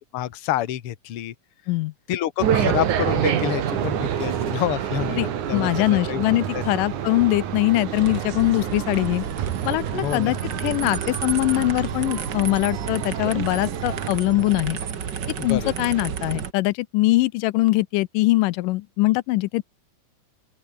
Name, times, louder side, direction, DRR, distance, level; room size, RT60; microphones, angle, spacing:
voice 1, 0.1-1.3 2.1-6.6 10.0-10.3 15.4-15.7, left 12 dB, 55° left, 1.9 m, -28 dB
sound 1, 2.4-14.1, right 9 dB, 65° right, 3.3 m, -28 dB
voice 2, 5.2-9.2 9.7-14.8 15.4-19.6, left 19 dB, 85° left, 2.3 m, -22 dB
sound 2, 8.0-16.5, right 7 dB, 45° right, 1.6 m, -32 dB
open air
omnidirectional pair, 3.8 m